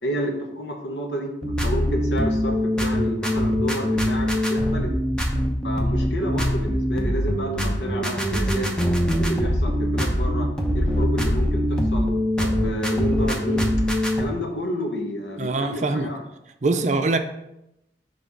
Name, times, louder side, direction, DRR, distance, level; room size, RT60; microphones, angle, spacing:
voice 1, 0.0-4.9 5.6-8.7 9.1-10.5 10.7-12.1 12.4-13.7 14.2-16.2, equal, 85° left, 2 dB, 1.2 m, -30 dB
sound 1, 1.4-14.2, equal, 5° left, 0.7 m, -23 dB
voice 2, 15.4-16.1 16.6-17.2, right 3 dB, 40° right, 7 dB, 0.5 m, -23 dB
6.0 x 3.4 x 5.2 m, 0.85 s
head